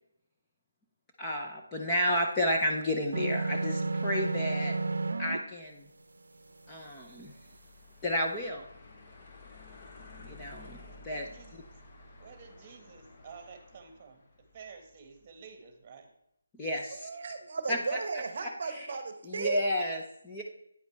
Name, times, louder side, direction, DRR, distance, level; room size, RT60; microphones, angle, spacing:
voice 1, 1.2-4.8 5.2-5.9 6.7-7.3 8.0-8.7 10.2-11.3 16.5-17.1 17.7-18.0 18.4-18.9 19.3-20.4, left 1 dB, 10° left, -2 dB, 0.6 m, -32 dB
sound 1, 3.1-5.4, right 3 dB, 80° right, 0.6 m, -31 dB
sound 2, 5.2-15.6, left 2 dB, 30° left, 1.0 m, -54 dB
voice 2, 10.9-11.6 12.2-14.2 14.5-16.1, right 5 dB, 20° right, 5 dB, 1.4 m, -51 dB
voice 3, 16.9-19.6, right 4 dB, 40° right, 9 dB, 0.9 m, -35 dB
9.2 x 7.9 x 3.3 m, 0.77 s
hypercardioid pair, 170°, 0 cm